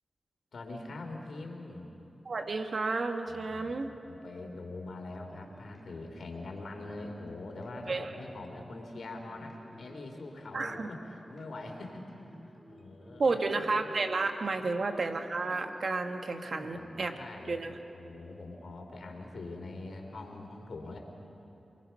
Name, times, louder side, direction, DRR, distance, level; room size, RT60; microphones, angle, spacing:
voice 1, 0.5-1.9 3.3-12.1 12.5-13.4 14.5-14.7 16.4-17.6 17.9-21.0, left 2 dB, 75° left, 3 dB, 3.3 m, -43 dB
voice 2, 2.3-3.9 7.9-8.1 10.5-10.9 13.2-17.2 17.5-17.7, right 3 dB, 65° right, 5 dB, 1.7 m, -31 dB
sound 1, 5.3-16.0, equal, 20° right, 3.8 m, -54 dB
28.5 x 20.0 x 5.9 m, 3.0 s
cardioid pair, 45°, 0 cm